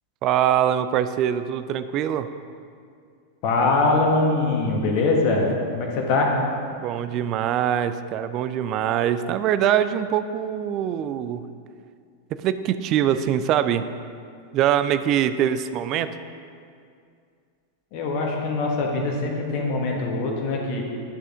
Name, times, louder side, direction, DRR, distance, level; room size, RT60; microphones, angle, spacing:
voice 1, 0.2-2.3 6.8-11.4 12.3-13.8 14.5-16.1, right 10 dB, 35° right, 11 dB, 0.4 m, -23 dB
voice 2, 3.4-6.3 17.9-20.8, left 3 dB, 45° left, 0 dB, 1.3 m, -22 dB
10.0 x 6.6 x 3.7 m, 2.3 s
figure-of-eight pair, 90°, 0 cm